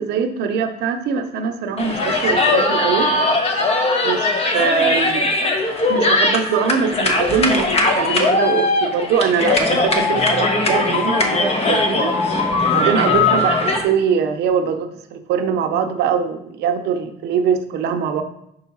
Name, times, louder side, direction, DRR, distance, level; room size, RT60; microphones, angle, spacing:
voice 1, 0.0-3.1 4.0-5.3 5.9-12.1 12.7-18.2, right 6 dB, 80° right, 6 dB, 0.8 m, -22 dB
sound 1, 1.8-13.8, left 2 dB, 35° left, 1.2 m, -19 dB
5.5 x 4.8 x 5.4 m, 0.78 s
cardioid pair, 110°, 17 cm